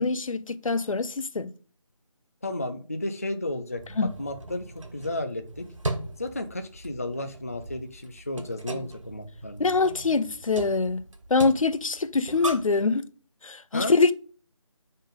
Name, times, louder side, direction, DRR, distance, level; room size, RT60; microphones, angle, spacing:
voice 1, 0.0-1.5 4.0-4.1 9.6-11.0 11.3-13.1 13.4-14.1, left 4 dB, 75° left, 0.7 m, -24 dB
voice 2, 2.4-5.7 6.2-9.7 13.7-13.9, left 1 dB, 25° left, 0.3 m, -33 dB
sound 1, 3.7-12.8, right 2 dB, 70° right, 1.4 m, -38 dB
5.2 x 3.7 x 5.2 m
figure-of-eight pair, 165°, 17 cm